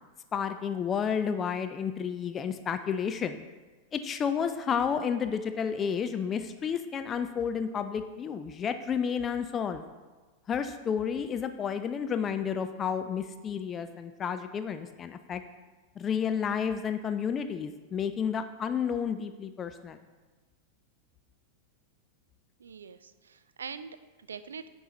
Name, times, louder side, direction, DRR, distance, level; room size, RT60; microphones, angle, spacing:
voice 1, 0.3-3.5 3.9-9.8 10.5-15.4 16.0-20.0, left 7 dB, 25° left, 9 dB, 0.3 m, -31 dB
voice 2, 22.6-24.7, right 6 dB, 70° right, 13 dB, 0.3 m, -43 dB
9.1 x 5.4 x 2.9 m, 1.3 s
figure-of-eight pair, 90°, 0 cm